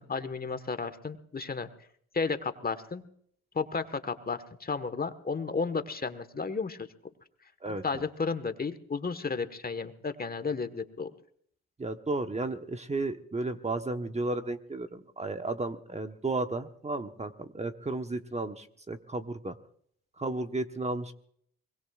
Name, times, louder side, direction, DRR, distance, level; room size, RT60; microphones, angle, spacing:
voice 1, 0.0-1.7 2.1-3.0 3.5-6.9 7.8-11.1, left 4 dB, 30° left, 10 dB, 1.4 m, -33 dB
voice 2, 7.6-8.0 11.8-19.6 20.2-21.1, right 2 dB, 20° right, 7 dB, 1.1 m, -33 dB
23.5 x 21.5 x 2.4 m, 0.63 s
supercardioid pair, 65°, 31 cm